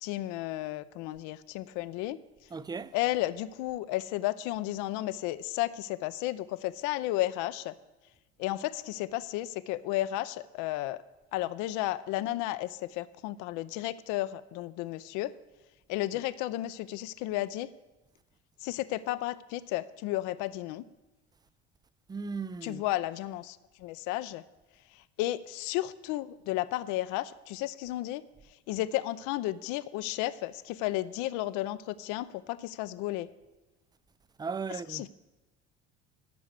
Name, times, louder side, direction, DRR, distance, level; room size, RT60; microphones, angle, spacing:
voice 1, 0.0-2.2 2.9-7.7 8.4-11.0 11.3-15.3 15.9-17.7 18.6-20.8 22.6-24.4 24.9-28.2 28.7-33.3 34.9-35.1, left 15 dB, 65° left, 0.6 m, -33 dB
voice 2, 2.5-2.9 22.1-22.8 34.4-35.1, right 5 dB, 15° right, 0.3 m, -36 dB
13.0 x 4.9 x 8.1 m
hypercardioid pair, 75°, 33 cm